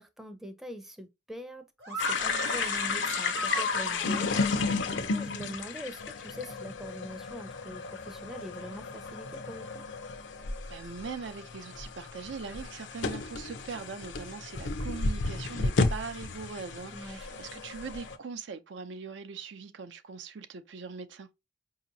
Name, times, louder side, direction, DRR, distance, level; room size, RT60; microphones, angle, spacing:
voice 1, 0.0-4.3 5.0-9.8 16.9-17.4, equal, ahead, 0.4 m, -43 dB
sound 1, 1.8-4.4, right 2 dB, 60° right, 0.9 m, -36 dB
sound 2, 2.0-18.2, left 4 dB, 85° left, 0.5 m, -33 dB
voice 2, 10.7-21.3, right 5 dB, 80° right, 0.5 m, -41 dB
4.9 x 2.8 x 2.6 m
head